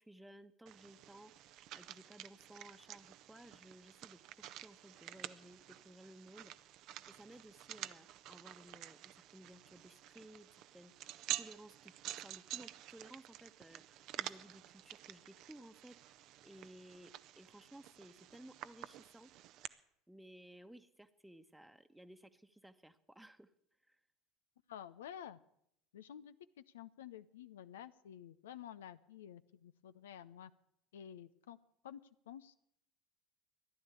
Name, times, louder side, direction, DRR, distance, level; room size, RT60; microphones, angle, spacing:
voice 1, 0.0-6.5 7.1-10.9 11.3-16.0 16.4-19.3 20.1-23.5 23.9-24.0, right 1 dB, 5° right, 10 dB, 1.1 m, -58 dB
sound 1, 0.7-19.7, right 13 dB, 55° right, 0.7 m, -49 dB
voice 2, 24.7-25.4 25.9-30.5 30.9-31.6 31.8-32.6, left 10 dB, 75° left, 13 dB, 0.5 m, -51 dB
14.5 x 11.0 x 8.4 m, 0.75 s
figure-of-eight pair, 70°, 0 cm